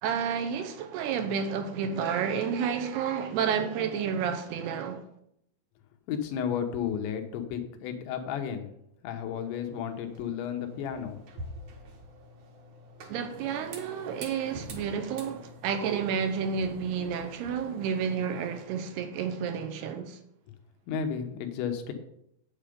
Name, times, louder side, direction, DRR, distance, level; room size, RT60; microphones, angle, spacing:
voice 1, 0.0-5.0 13.1-20.2, right 7 dB, 80° right, 2.7 m, -30 dB
voice 2, 6.1-8.7 9.0-11.2 20.9-21.9, left 8 dB, 90° left, 3.4 m, -33 dB
sound 1, 9.4-18.6, equal, 55° right, 2.2 m, -47 dB
9.0 x 8.7 x 5.1 m
omnidirectional pair, 5.0 m